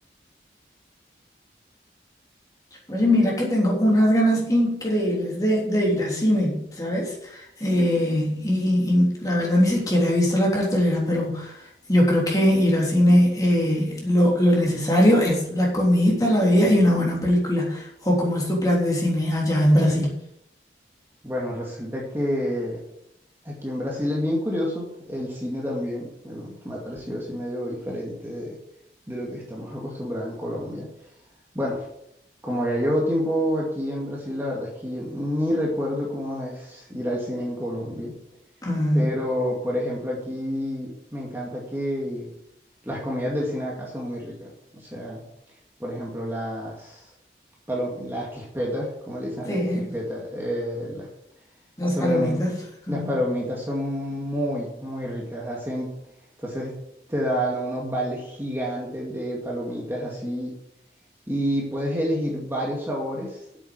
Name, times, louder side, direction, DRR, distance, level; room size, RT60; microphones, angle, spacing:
voice 1, 2.9-11.5 11.9-20.1 38.6-39.1 49.5-49.9 51.8-52.6 52.9-53.1, equal, 20° left, -3 dB, 3.4 m, -21 dB
voice 2, 21.2-22.8 23.4-28.6 29.1-30.9 31.5-31.9 32.4-38.1 38.9-42.3 42.8-45.2 45.8-47.1 47.7-51.1 51.9-52.4 52.9-55.9 56.4-56.7 57.1-60.5 61.3-63.4, equal, 15° right, -3 dB, 2.2 m, -29 dB
8.5 x 7.8 x 7.9 m, 0.77 s
head